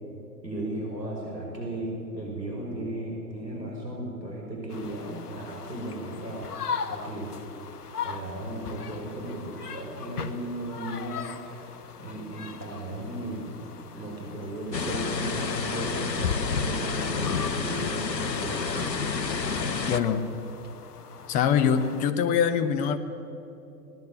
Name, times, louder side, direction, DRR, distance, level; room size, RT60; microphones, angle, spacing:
voice 1, 0.4-6.4 6.9-7.3 8.0-13.5 13.9-18.9, right 1 dB, 85° right, -1 dB, 5.4 m, -36 dB
sound 1, 4.7-22.1, left 6 dB, 65° left, 1.5 m, -40 dB
sound 2, 14.7-20.0, left 5 dB, 85° left, 1.3 m, -29 dB
voice 2, 19.9-20.3 21.3-23.0, left 7 dB, 15° left, 12 dB, 0.7 m, -23 dB
20.0 x 17.5 x 8.4 m, 3.0 s
figure-of-eight pair, 115°, 49 cm